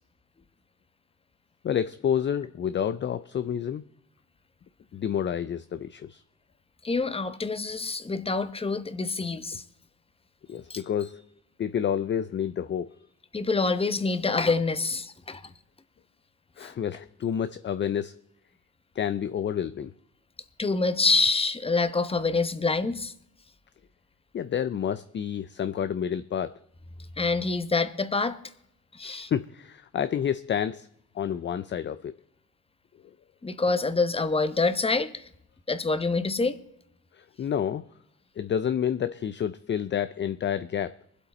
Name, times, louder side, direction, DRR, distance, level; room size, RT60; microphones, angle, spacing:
voice 1, 1.6-3.8 4.9-6.2 10.5-11.2 11.6-13.0 16.6-18.2 18.9-19.9 24.3-26.6 29.0-30.9 31.1-32.2 37.1-37.9 38.4-41.0, left 9 dB, 40° left, 0.5 m, -29 dB
voice 2, 6.8-9.6 10.7-10.8 13.3-15.4 16.6-16.7 20.6-23.1 27.2-28.4 28.9-29.3 33.4-35.3 35.7-36.6, left 3 dB, 20° left, 1.0 m, -26 dB
23.0 x 8.1 x 4.2 m
cardioid pair, 90°, 30 cm